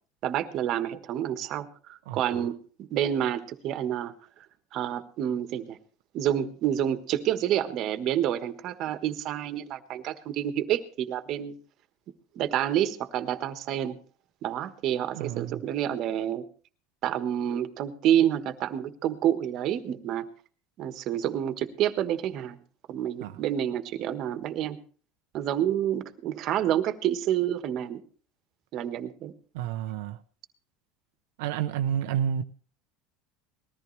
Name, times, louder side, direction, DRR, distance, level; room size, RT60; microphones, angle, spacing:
voice 1, 0.2-4.1 4.7-5.8 6.1-11.5 12.3-14.0 14.4-16.4 17.0-20.3 20.8-22.6 22.9-24.8 25.3-28.0 28.7-29.3, right 11 dB, 45° right, 1.4 m, -28 dB
voice 2, 2.1-2.5 15.1-15.6 23.2-23.4 29.5-30.2 31.4-32.4, right 9 dB, 80° right, 0.7 m, -30 dB
20.0 x 14.0 x 3.3 m
supercardioid pair, 140°, 0 cm